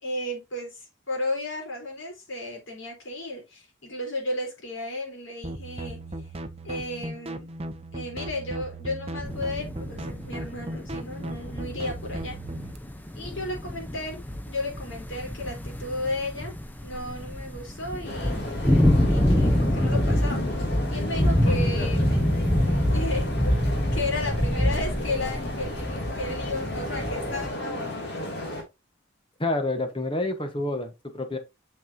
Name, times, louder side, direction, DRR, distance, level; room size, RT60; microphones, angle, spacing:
voice 1, 0.0-6.0 6.6-7.5 7.9-12.4 13.2-14.2 14.5-16.5 16.8-18.4 19.0-20.6 20.9-22.1 22.9-23.3 23.9-27.9, left 2 dB, 80° left, 4.0 m, -33 dB
sound 1, 5.4-12.8, right 1 dB, 30° right, 0.7 m, -37 dB
sound 2, 9.2-27.5, left 1 dB, 10° left, 0.8 m, -26 dB
sound 3, 18.0-28.6, left 1 dB, 55° left, 2.7 m, -34 dB
voice 2, 29.4-31.4, left 2 dB, 25° left, 1.3 m, -28 dB
7.1 x 6.2 x 2.8 m
head